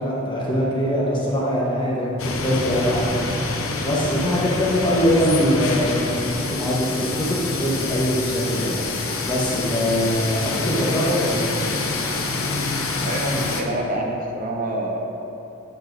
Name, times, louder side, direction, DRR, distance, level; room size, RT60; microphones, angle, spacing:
voice 1, 0.0-11.5, equal, 25° left, -6 dB, 1.0 m, -23 dB
sound 1, 2.2-13.6, left 3 dB, 75° left, 0.7 m, -27 dB
voice 2, 13.0-15.0, right 1 dB, 40° right, 0 dB, 0.7 m, -27 dB
10.5 x 5.5 x 2.6 m, 2.8 s
head